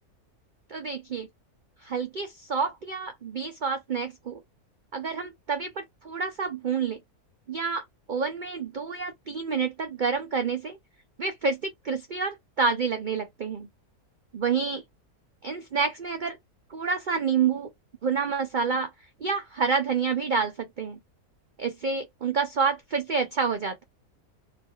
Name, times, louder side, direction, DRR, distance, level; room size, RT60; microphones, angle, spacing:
voice 1, 0.7-1.3 1.8-4.4 4.9-7.0 7.5-10.8 11.2-13.7 14.3-14.8 15.4-16.4 16.7-17.7 18.0-18.9 19.2-21.0 21.6-23.8, right 5 dB, 65° right, 0.4 m, -28 dB
3.2 x 2.4 x 2.7 m
omnidirectional pair, 1.6 m